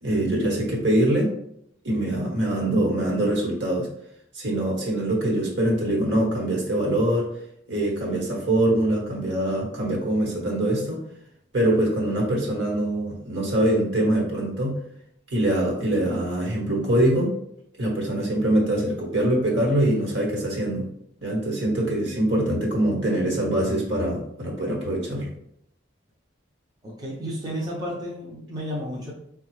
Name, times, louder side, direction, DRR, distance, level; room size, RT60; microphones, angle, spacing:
voice 1, 0.0-1.3 1.8-3.9 4.3-7.3 7.7-11.0 11.5-14.8 15.3-17.3 17.8-20.9 21.2-25.3, right 1 dB, 65° right, -2 dB, 1.2 m, -23 dB
voice 2, 26.8-29.1, equal, 20° right, -4 dB, 0.5 m, -32 dB
4.6 x 2.3 x 3.1 m, 0.73 s
head